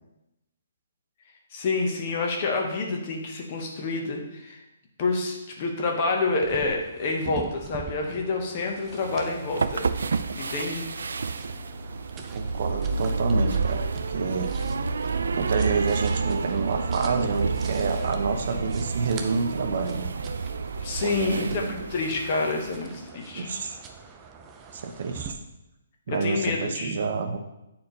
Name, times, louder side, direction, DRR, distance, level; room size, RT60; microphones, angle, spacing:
voice 1, 1.5-4.6 5.0-9.9 10.3-10.9 20.8-21.6 21.9-23.5 26.1-27.0, left 3 dB, 30° left, 2 dB, 1.1 m, -28 dB
sound 1, 6.4-25.3, right 6 dB, 15° right, 0.5 m, -45 dB
sound 2, 8.9-22.8, right 4 dB, 85° right, 0.4 m, -29 dB
voice 2, 12.3-14.5 15.3-20.1 21.0-21.9 23.3-23.8 24.7-25.4 26.1-27.4, right 4 dB, 45° right, 6 dB, 0.7 m, -28 dB
9.1 x 4.4 x 3.9 m, 0.92 s
hypercardioid pair, 170°, 0 cm